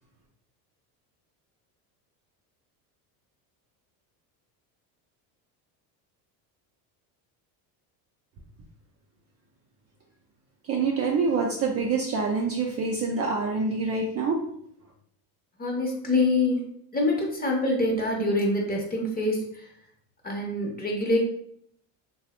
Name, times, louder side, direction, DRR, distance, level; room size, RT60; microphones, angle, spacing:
voice 1, 10.7-14.4, right 4 dB, 35° right, -1 dB, 0.4 m, -26 dB
voice 2, 15.6-16.6 16.9-19.4 20.2-21.2, left 2 dB, 20° left, -1 dB, 0.7 m, -25 dB
3.0 x 2.1 x 2.9 m, 0.67 s
supercardioid pair, 105°, 45 cm